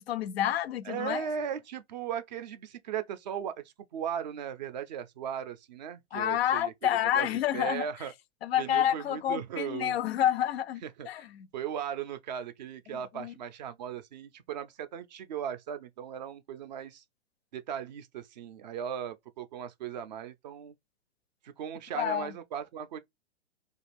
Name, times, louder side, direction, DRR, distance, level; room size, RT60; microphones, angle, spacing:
voice 1, 0.0-1.3 6.1-7.9 8.4-11.5 12.9-13.3 21.9-22.3, left 11 dB, 55° left, 0.4 m, -29 dB
voice 2, 0.9-3.6 3.9-6.7 7.1-7.3 7.5-8.1 8.6-10.0 10.8-11.3 11.5-17.0 17.5-20.7 21.4-23.0, right 8 dB, 40° right, 0.4 m, -37 dB
2.5 x 2.4 x 3.2 m
hypercardioid pair, 125°, 37 cm